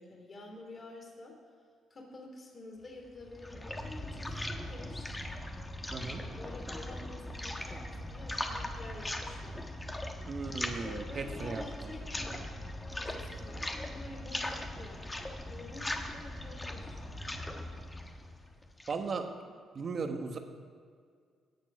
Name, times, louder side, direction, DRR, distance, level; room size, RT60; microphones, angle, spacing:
voice 1, 0.0-1.4 1.9-5.1 6.1-9.7 10.8-17.0, left 2 dB, 40° left, 1 dB, 2.9 m, -49 dB
sound 1, 3.0-19.1, left 1 dB, 15° left, 1.3 m, -40 dB
voice 2, 5.9-6.2 10.3-11.9 12.3-12.4 18.9-19.3 19.7-20.4, right 4 dB, 45° right, 5 dB, 1.3 m, -37 dB
17.5 x 7.4 x 5.4 m, 2.1 s
cardioid pair, 90°, 0 cm